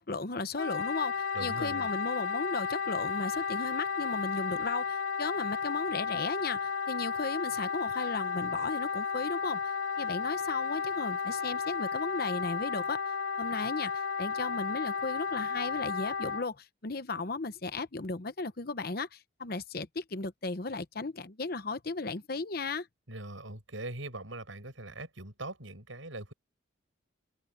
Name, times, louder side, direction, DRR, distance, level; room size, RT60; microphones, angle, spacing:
voice 1, 0.0-9.6 10.0-13.0 13.4-22.9, left 3 dB, 50° left, 0.9 m, -35 dB
Wind instrument woodwind instrument, 0.6-16.4, left 6 dB, 80° left, 3.1 m, -33 dB
voice 2, 1.3-1.9 23.1-26.3, right 2 dB, 80° right, 7.3 m, -41 dB
open air
head